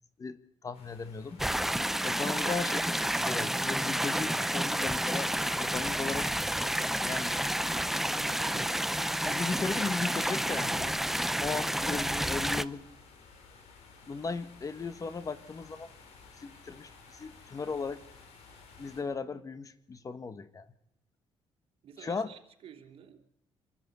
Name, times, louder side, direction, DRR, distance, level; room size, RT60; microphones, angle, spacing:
voice 1, 0.2-1.4 2.0-5.3 5.6-6.3 7.0-7.3 9.2-11.0 11.4-12.8 14.1-15.9 16.4-18.0 18.8-20.7 22.0-22.3, left 4 dB, 35° left, 13 dB, 1.3 m, -36 dB
sound 1, 0.7-19.0, left 4 dB, 85° left, 5.2 m, -56 dB
sound 2, 1.4-12.6, right 1 dB, 5° right, 0.7 m, -30 dB
voice 2, 8.0-8.9 21.8-23.2, right 7 dB, 65° right, 4 dB, 3.3 m, -50 dB
26.0 x 13.0 x 8.3 m, 0.77 s
cardioid pair, 95°, 10 cm